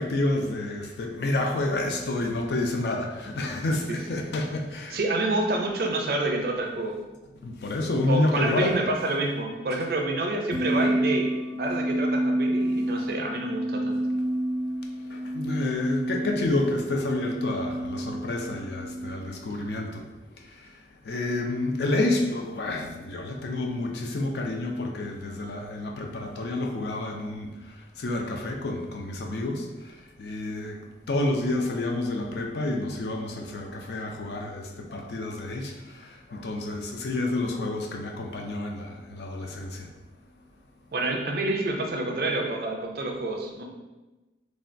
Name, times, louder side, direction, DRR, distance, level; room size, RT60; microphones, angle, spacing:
voice 1, 0.0-5.0 7.4-8.7 15.1-20.0 20.5-20.7 21.0-30.8 31.1-39.9, left 2 dB, 70° left, 2 dB, 0.4 m, -29 dB
voice 2, 4.9-7.0 8.1-11.3 11.6-14.0 19.5-19.6 40.9-43.6, right 2 dB, 55° right, 1 dB, 0.4 m, -28 dB
sound 1, 10.5-19.1, right 1 dB, 45° left, 1.0 m, -29 dB
3.2 x 2.2 x 2.5 m, 1.1 s
head